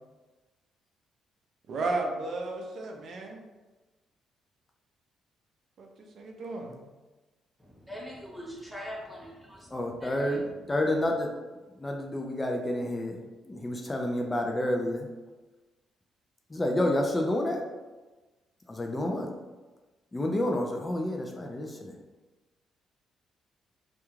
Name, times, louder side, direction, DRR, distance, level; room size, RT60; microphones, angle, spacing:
voice 1, 1.7-3.4 5.8-6.8, right 2 dB, 60° right, 1 dB, 0.5 m, -34 dB
voice 2, 7.6-10.4, equal, 5° right, -4 dB, 0.8 m, -42 dB
voice 3, 9.7-10.4 10.7-11.3 11.8-15.1 16.5-17.6 18.7-19.3 20.1-21.9, left 1 dB, 20° left, 1 dB, 0.3 m, -29 dB
2.3 x 2.2 x 3.0 m, 1.2 s
cardioid pair, 90°, 0 cm